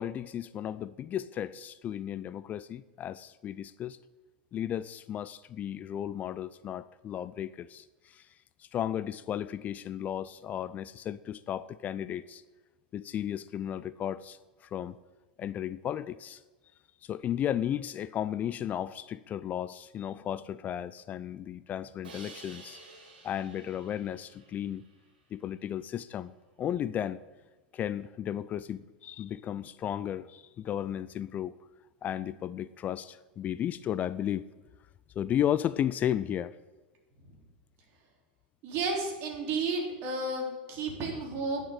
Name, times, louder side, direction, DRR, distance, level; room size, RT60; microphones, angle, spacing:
voice 1, 0.0-4.0 4.5-8.3 8.6-12.4 12.9-15.0 15.4-16.4 17.0-22.8 23.2-24.8 25.3-27.2 27.7-31.6 32.0-34.5 35.2-36.6, left 10 dB, 30° left, 17 dB, 0.4 m, -34 dB
Crash cymbal, 22.0-25.1, right 3 dB, 75° right, 2.9 m, -51 dB
voice 2, 38.6-41.6, right 3 dB, 45° right, 1 dB, 3.8 m, -32 dB
11.0 x 6.7 x 9.0 m, 1.2 s
hypercardioid pair, 90°, 5 cm